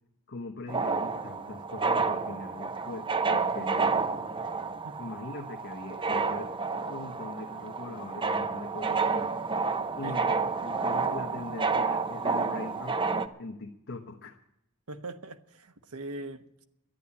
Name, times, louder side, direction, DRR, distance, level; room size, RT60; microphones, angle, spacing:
voice 1, 0.3-3.9 5.0-6.5 6.9-9.3 10.0-14.4, left 2 dB, 50° left, 1 dB, 1.2 m, -41 dB
sound 1, 0.7-13.3, right 4 dB, 25° right, 0.7 m, -30 dB
voice 2, 14.9-16.6, right 2 dB, 80° right, 10 dB, 1.1 m, -41 dB
11.5 x 10.0 x 8.4 m, 0.82 s
head